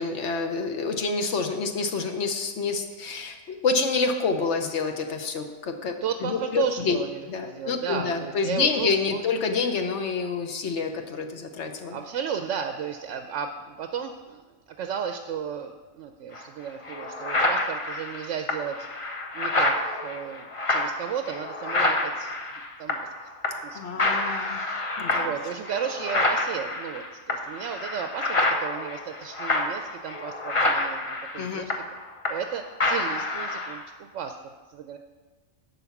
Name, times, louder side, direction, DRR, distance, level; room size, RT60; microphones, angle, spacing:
voice 1, 0.0-5.9 6.2-7.0 7.3-12.0 23.7-24.6 25.0-25.3 31.4-31.7, left 4 dB, 60° left, 5 dB, 1.1 m, -28 dB
voice 2, 6.0-9.2 11.9-18.8 19.3-22.3 22.8-23.1 23.6-24.1 24.5-24.8 25.2-31.7 32.3-35.0, right 7 dB, 70° right, 6 dB, 0.8 m, -34 dB
sound 1, 16.3-16.4 16.8-23.2 23.4-23.7 24.0-32.5 32.8-33.8, left 2 dB, 30° left, 0.7 m, -27 dB
11.0 x 4.1 x 7.1 m, 1.3 s
omnidirectional pair, 1.4 m